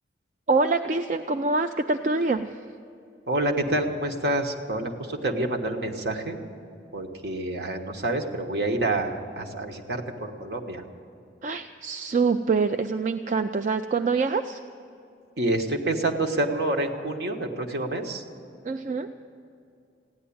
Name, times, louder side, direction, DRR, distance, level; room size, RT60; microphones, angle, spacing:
voice 1, 0.5-2.5 11.4-14.6 18.7-19.1, right 4 dB, 40° right, 8 dB, 0.3 m, -25 dB
voice 2, 3.3-6.4 6.9-10.8 15.4-18.2, right 1 dB, 65° right, 3 dB, 1.3 m, -28 dB
15.5 x 10.5 x 8.6 m, 2.6 s
head